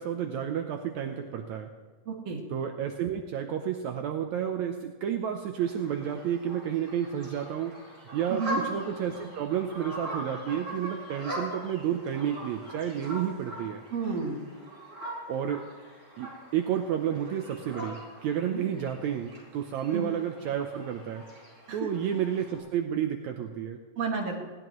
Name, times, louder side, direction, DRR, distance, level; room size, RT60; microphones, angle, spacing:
voice 1, 0.0-1.7 2.5-7.8 8.1-13.8 15.3-15.6 16.2-21.2 21.7-23.8, right 9 dB, 75° right, 4 dB, 2.0 m, -31 dB
voice 2, 2.1-2.4 8.3-8.6 13.9-14.4 18.5-18.7 19.9-20.0 21.7-21.9 24.0-24.3, right 5 dB, 55° right, 0 dB, 3.1 m, -31 dB
sound 1, 5.5-22.6, equal, 20° right, 5.9 m, -41 dB
20.0 x 17.5 x 3.1 m, 1.4 s
omnidirectional pair, 3.5 m